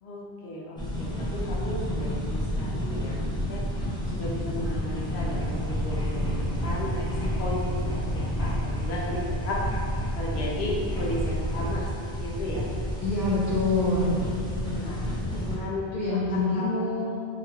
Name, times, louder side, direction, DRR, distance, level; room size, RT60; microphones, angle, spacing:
voice 1, 0.0-9.6 10.1-11.9 12.2-12.7 14.7-17.0, left 1 dB, 85° left, -4 dB, 0.9 m, -35 dB
sound 1, 0.8-15.5, equal, 5° left, 0.5 m, -30 dB
voice 2, 13.0-14.2 15.9-17.3, left 2 dB, 60° left, -13 dB, 1.1 m, -26 dB
3.6 x 2.9 x 2.2 m, 2.4 s
omnidirectional pair, 1.0 m